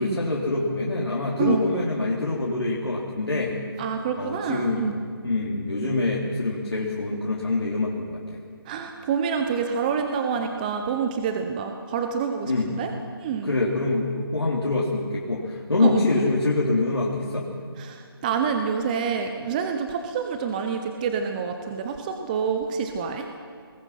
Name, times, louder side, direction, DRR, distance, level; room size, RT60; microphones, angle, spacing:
voice 1, 0.0-3.6 4.2-4.9 5.2-8.4 12.5-12.7 13.4-17.5, left 2 dB, 85° left, -4 dB, 3.6 m, -25 dB
voice 2, 3.8-4.9 8.7-12.9 13.2-13.6 15.8-16.0 17.8-23.2, right 6 dB, 20° right, 5 dB, 0.9 m, -27 dB
23.0 x 20.5 x 6.0 m, 2.1 s
figure-of-eight pair, 160°, 13 cm